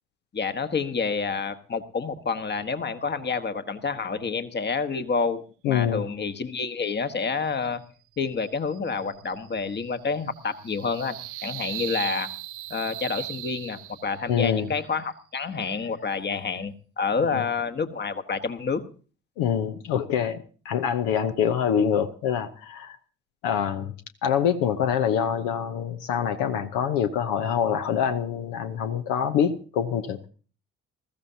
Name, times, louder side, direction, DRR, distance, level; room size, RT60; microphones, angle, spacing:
voice 1, 0.3-7.8 8.2-11.2 11.4-12.3 12.7-18.8, left 5 dB, 30° left, 11 dB, 1.3 m, -28 dB
voice 2, 5.6-6.1 14.3-14.7 17.3-17.4 19.4-23.0 23.4-23.9 24.2-30.3, left 8 dB, 65° left, 8 dB, 0.9 m, -25 dB
sound 1, 8.4-14.4, right 17 dB, 60° right, 0.7 m, -38 dB
20.5 x 14.5 x 2.8 m, 0.39 s
figure-of-eight pair, 50°, 36 cm